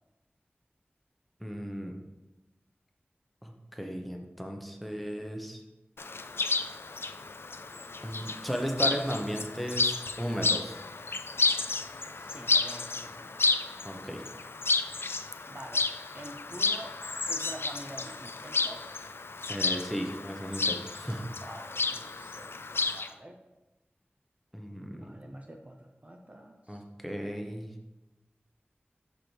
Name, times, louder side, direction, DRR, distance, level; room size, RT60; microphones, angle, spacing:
voice 1, 1.4-1.9 3.4-5.6 8.0-10.8 13.8-14.2 19.5-21.4 24.5-25.1 26.7-27.7, equal, ahead, 2 dB, 0.9 m, -35 dB
Chirp tweet, 6.0-23.1, left 3 dB, 75° left, 0.3 m, -32 dB
voice 2, 8.0-8.3 12.2-13.3 15.5-17.0 17.3-18.9 21.4-23.4 24.9-26.8, right 1 dB, 35° right, 2 dB, 0.6 m, -47 dB
6.6 x 6.0 x 3.3 m, 1.0 s
wide cardioid pair, 55°, 4 cm